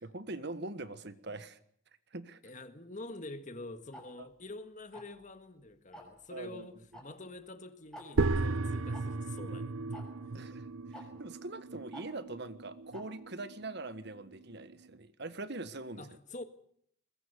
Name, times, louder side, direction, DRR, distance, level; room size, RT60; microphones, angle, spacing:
voice 1, 0.0-1.6 2.1-2.4 4.2-4.3 6.3-6.7 9.5-9.6 10.3-16.1, right 2 dB, 55° right, 1.5 m, -43 dB
voice 2, 2.4-10.2 11.1-11.2 16.0-16.4, left 2 dB, 35° left, 1.7 m, -47 dB
Tick-tock, 3.9-4.0 4.9-5.2 5.9-6.2 6.9-7.0 7.3-7.4 7.9-8.1 8.9-9.0 9.9-10.0 10.9-11.0 11.9-12.0 12.9-13.0, equal, 5° left, 6.3 m, -47 dB
sound 1, 8.2-14.9, right 3 dB, 75° right, 0.8 m, -36 dB
23.0 x 21.5 x 6.9 m
head